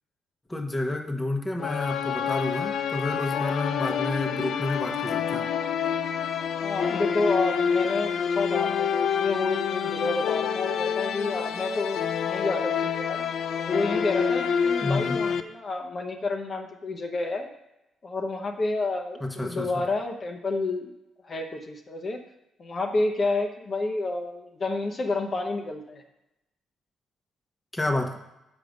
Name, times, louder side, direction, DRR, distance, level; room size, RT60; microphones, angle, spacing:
voice 1, 0.5-5.5 14.8-15.2 19.2-19.7 27.7-28.2, left 2 dB, 15° left, 3 dB, 1.1 m, -30 dB
sound 1, 1.6-15.4, left 7 dB, 65° left, 0.6 m, -27 dB
voice 2, 6.6-12.0 12.3-13.2 13.6-17.5 18.0-20.9 21.2-22.2 22.6-26.0, left 3 dB, 40° left, 3 dB, 1.0 m, -29 dB
7.5 x 5.3 x 6.4 m, 0.91 s
cardioid pair, 90°, 0 cm